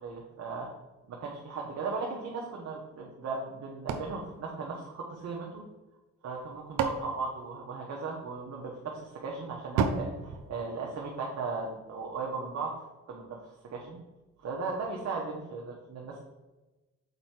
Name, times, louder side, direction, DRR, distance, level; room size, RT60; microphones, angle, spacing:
voice 1, 0.0-0.7 1.1-5.6 6.2-12.7 13.1-14.0 14.4-16.3, right 4 dB, 55° right, -2 dB, 1.3 m, -37 dB
sound 1, 3.9-5.4 6.3-8.3 9.8-11.4, right 5 dB, 85° right, 0.8 m, -34 dB
6.7 x 4.5 x 4.4 m, 1.1 s
cardioid pair, 90°, 30 cm